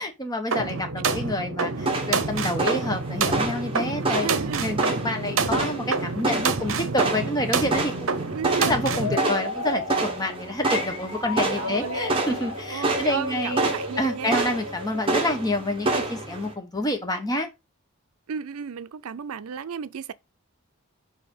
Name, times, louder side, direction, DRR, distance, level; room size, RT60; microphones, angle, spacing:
voice 1, 0.0-4.3 4.6-8.3 8.6-13.7 14.0-17.5, left 1 dB, 15° left, 1.0 m, -28 dB
sound 1, 0.5-9.2, right 4 dB, 65° right, 0.8 m, -27 dB
sound 2, 1.8-16.5, right 2 dB, 25° right, 1.3 m, -29 dB
voice 2, 4.0-4.6 8.3-8.8 11.5-12.1 12.7-14.4 14.9-15.0 18.3-20.1, right 7 dB, 80° right, 0.5 m, -33 dB
sound 3, 8.8-15.6, left 3 dB, 70° left, 1.3 m, -34 dB
4.9 x 4.7 x 5.4 m
head